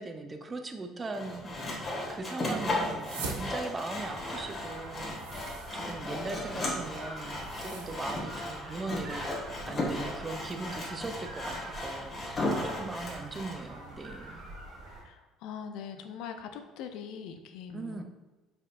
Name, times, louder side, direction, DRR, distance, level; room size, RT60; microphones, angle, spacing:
voice 1, 0.0-9.4 9.6-14.4 17.7-18.0, right 3 dB, 30° right, 6 dB, 0.5 m, -40 dB
Sawing, 1.1-13.6, left 1 dB, 35° left, 1.4 m, -35 dB
sound 1, 2.8-8.2, right 4 dB, 80° right, 0.6 m, -45 dB
sound 2, 4.0-15.0, right 1 dB, 60° right, 1.5 m, -45 dB
voice 2, 15.0-18.0, left 7 dB, 65° left, 7 dB, 0.4 m, -42 dB
5.1 x 4.3 x 2.4 m, 1.2 s
hypercardioid pair, 55°, 0 cm